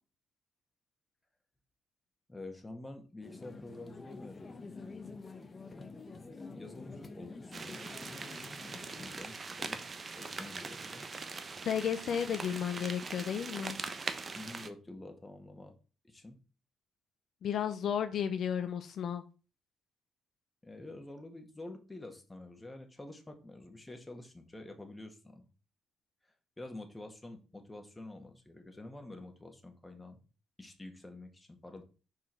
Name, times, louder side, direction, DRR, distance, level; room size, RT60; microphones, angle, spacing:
voice 1, 2.3-4.7 6.2-8.3 8.7-9.8 10.2-11.1 14.4-15.7 16.0-16.4 20.6-25.5 26.6-30.2 30.6-31.8, left 2 dB, 15° left, 1.7 m, -48 dB
sound 1, 3.2-9.2, left 3 dB, 30° left, 1.0 m, -48 dB
sound 2, 7.5-14.7, right 4 dB, 35° right, 0.9 m, -42 dB
voice 2, 11.7-13.8 17.4-19.2, left 8 dB, 65° left, 0.6 m, -33 dB
5.9 x 4.6 x 4.4 m
cardioid pair, 90°, 0 cm